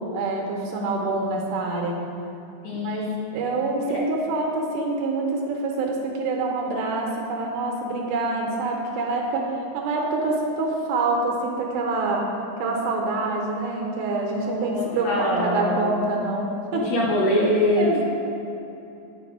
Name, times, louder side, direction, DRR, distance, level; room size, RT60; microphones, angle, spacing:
voice 1, 0.1-2.0 2.7-16.9 17.8-18.0, right 2 dB, 80° right, 0 dB, 2.4 m, -26 dB
voice 2, 2.6-4.0 14.4-15.9 16.9-18.0, left 1 dB, 70° left, -4 dB, 1.8 m, -24 dB
8.4 x 4.7 x 4.8 m, 2.8 s
omnidirectional pair, 3.8 m